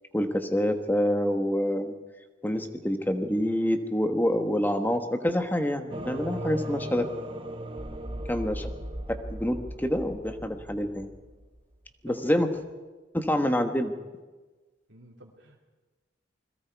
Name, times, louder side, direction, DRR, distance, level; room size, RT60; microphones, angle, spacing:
voice 1, 0.1-1.9 2.4-7.1 8.3-8.7 9.1-11.1 12.0-12.5 13.1-13.9, equal, 10° left, 7 dB, 1.3 m, -27 dB
sound 1, 5.9-11.6, right 1 dB, 30° right, 1.0 m, -37 dB
voice 2, 12.1-12.6 14.9-15.6, right 1 dB, 85° right, -1 dB, 2.7 m, -49 dB
28.0 x 21.5 x 4.7 m, 1.3 s
head